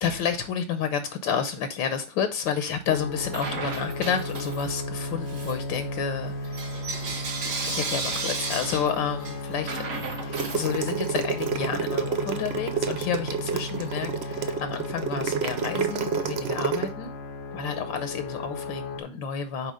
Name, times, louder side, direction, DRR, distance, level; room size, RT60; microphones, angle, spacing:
voice 1, 0.0-6.9 7.7-9.7 10.0-17.1 17.5-19.7, left 7 dB, 75° left, 1.5 m, -30 dB
sound 1, 2.9-19.0, left 2 dB, 55° left, 0.7 m, -35 dB
Bell / Coin (dropping), 3.3-4.8 5.2-11.2, right 4 dB, 45° right, 1.3 m, -34 dB
sound 2, 10.2-16.9, right 6 dB, 80° right, 0.5 m, -29 dB
6.5 x 4.7 x 4.9 m
omnidirectional pair, 2.1 m